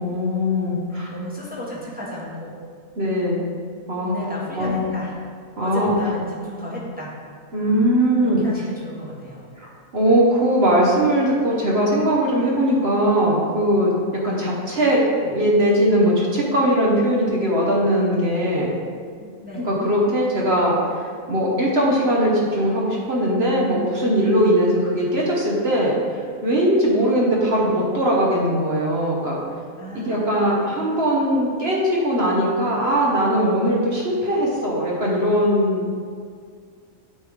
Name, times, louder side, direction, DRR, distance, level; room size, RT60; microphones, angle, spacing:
voice 1, 0.0-1.1 3.0-3.4 3.9-4.1 4.6-4.8 5.6-6.0 7.5-8.4 9.6-13.9 14.2-18.7 19.6-26.0 26.4-29.4 29.9-35.8, equal, 50° right, -4 dB, 1.2 m, -20 dB
voice 2, 0.9-2.6 4.0-5.1 5.6-7.2 8.2-9.4 19.2-19.7 29.8-30.9, equal, 5° right, -6 dB, 1.1 m, -34 dB
8.6 x 3.4 x 5.0 m, 2.1 s
omnidirectional pair, 1.5 m